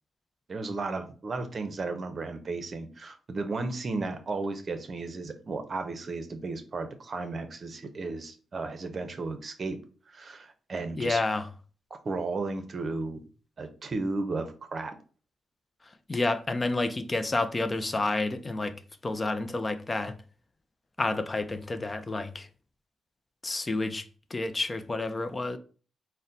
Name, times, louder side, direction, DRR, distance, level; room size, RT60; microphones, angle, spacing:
voice 1, 0.5-9.8 10.1-11.2 12.0-13.2 13.6-14.9, right 3 dB, 45° right, 0.7 m, -34 dB
voice 2, 11.0-11.5 15.8-18.8 19.0-20.2 21.0-22.5 23.4-25.6, left 2 dB, 25° left, 0.5 m, -30 dB
4.0 x 2.1 x 3.9 m
cardioid pair, 95°, 0 cm